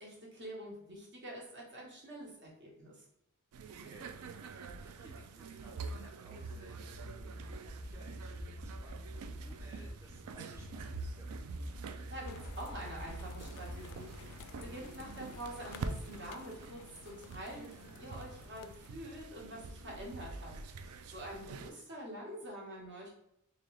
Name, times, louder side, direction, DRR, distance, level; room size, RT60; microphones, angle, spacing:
voice 1, 0.0-3.0 12.1-23.1, right 1 dB, 55° right, -3 dB, 1.3 m, -46 dB
sound 1, 3.5-21.7, right 4 dB, 80° right, 0.4 m, -46 dB
voice 2, 3.8-6.9 7.5-11.8 20.0-20.1, right 1 dB, 10° right, -2 dB, 0.4 m, -59 dB
sound 2, 6.9-14.6, right 1 dB, 30° right, 0.8 m, -47 dB
sound 3, 12.3-19.0, left 5 dB, 75° left, 0.3 m, -53 dB
3.7 x 2.9 x 3.3 m, 0.78 s
head